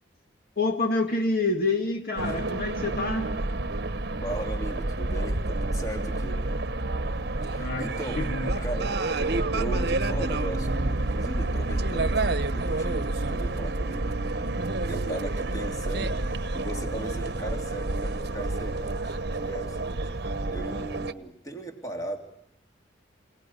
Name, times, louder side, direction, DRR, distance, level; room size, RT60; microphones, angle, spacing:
voice 1, 0.6-3.3 7.6-7.9 8.2-8.7, left 3 dB, 50° left, 4 dB, 2.0 m, -27 dB
sound 1, 2.2-21.1, right 2 dB, 60° right, 1.0 m, -29 dB
voice 2, 4.2-6.4 7.5-8.2 8.6-14.1 14.8-22.2, right 2 dB, 20° left, 4 dB, 3.0 m, -38 dB
27.5 x 18.5 x 10.0 m, 0.77 s
head